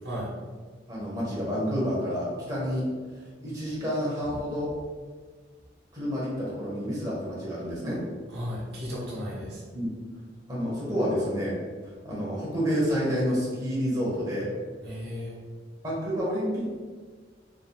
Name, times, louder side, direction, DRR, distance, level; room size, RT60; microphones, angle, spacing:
voice 1, 0.9-2.8 3.4-4.7 5.9-8.0 9.7-9.9 10.5-11.5 12.0-14.5 15.8-16.8, equal, 20° right, -7 dB, 1.1 m, -29 dB
voice 2, 8.3-9.6 14.8-15.4, equal, 70° right, -5 dB, 1.2 m, -34 dB
4.9 x 3.3 x 2.4 m, 1.5 s
head